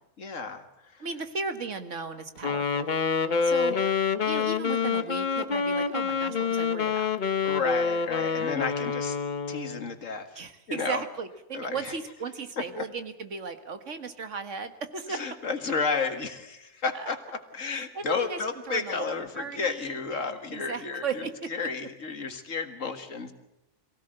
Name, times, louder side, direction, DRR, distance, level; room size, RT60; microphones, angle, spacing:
voice 1, 0.2-1.1 3.7-3.9 7.4-9.2 9.5-10.4 10.7-11.0 11.5-11.9 12.7-12.8 15.1-23.3, left 4 dB, 80° left, 8 dB, 2.1 m, -32 dB
voice 2, 1.0-2.9 3.4-3.9 4.1-7.1 10.4-15.2 16.9-17.1 17.7-18.4 18.7-20.2 20.5-21.5, right 5 dB, 70° right, 9 dB, 1.9 m, -36 dB
Wind instrument woodwind instrument, 2.4-9.9, left 6 dB, 40° left, 1.0 m, -27 dB
23.5 x 16.5 x 7.8 m, 0.92 s
omnidirectional pair, 1.3 m